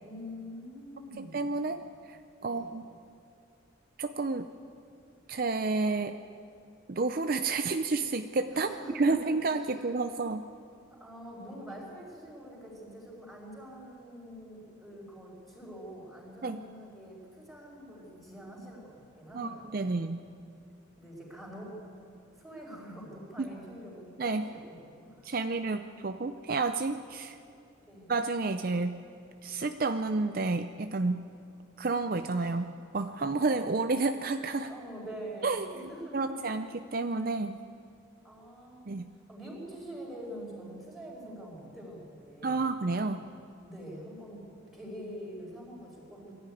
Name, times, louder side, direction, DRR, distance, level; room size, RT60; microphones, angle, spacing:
voice 1, 0.0-1.4 2.4-2.7 8.5-9.9 11.0-19.9 21.0-21.8 22.4-25.3 25.8-25.9 27.8-28.1 32.4-32.7 34.7-36.4 38.2-39.0 39.3-42.7 43.3-44.4 44.7-46.3, equal, ahead, -4 dB, 5.2 m, -45 dB
voice 2, 1.2-2.8 4.0-4.5 5.3-6.2 6.9-10.5 16.4-16.6 19.3-20.2 23.4-23.5 24.2-24.5 25.2-27.4 28.1-29.0 29.4-31.2 31.8-32.6 32.9-34.7 35.4-35.7 36.1-37.6 38.9-39.1 42.4-43.2, right 3 dB, 45° right, 8 dB, 0.5 m, -30 dB
22.5 x 14.0 x 9.3 m, 2.5 s
head